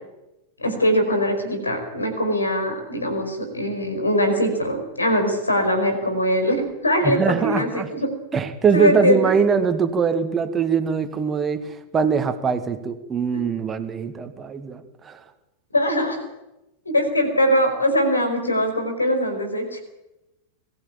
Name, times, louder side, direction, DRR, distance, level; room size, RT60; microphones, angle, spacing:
voice 1, 0.6-8.1 8.7-9.3 13.3-13.4 15.7-16.2 16.8-19.8, equal, 80° left, 6 dB, 5.1 m, -22 dB
voice 2, 7.0-7.9 8.3-15.2, right 6 dB, 20° right, 8 dB, 1.9 m, -22 dB
22.5 x 15.0 x 9.0 m, 0.94 s
figure-of-eight pair, 90°, 0 cm